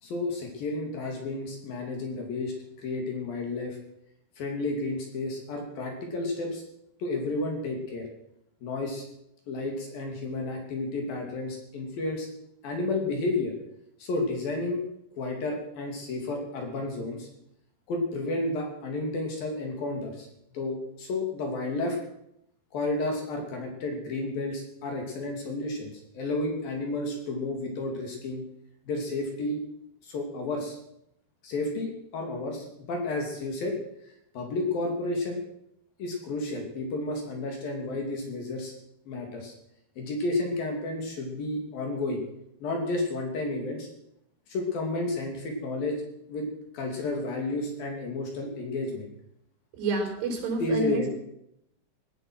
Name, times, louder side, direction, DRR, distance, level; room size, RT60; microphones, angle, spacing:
voice 1, 0.0-3.8 4.4-6.6 7.0-8.1 8.6-9.1 9.5-12.3 12.6-13.5 14.0-14.8 15.2-17.3 17.9-20.3 20.5-22.0 22.7-28.4 28.9-29.6 30.0-30.8 31.4-33.7 34.3-35.4 36.0-38.7 39.1-39.5 40.0-42.2 42.6-43.9 44.5-46.0 46.3-46.5 46.7-49.1 50.6-51.1, left 2 dB, 60° left, 2 dB, 4.2 m, -31 dB
voice 2, 49.7-51.1, right 3 dB, 90° right, 1 dB, 6.5 m, -29 dB
18.0 x 12.5 x 6.2 m, 0.77 s
omnidirectional pair, 4.8 m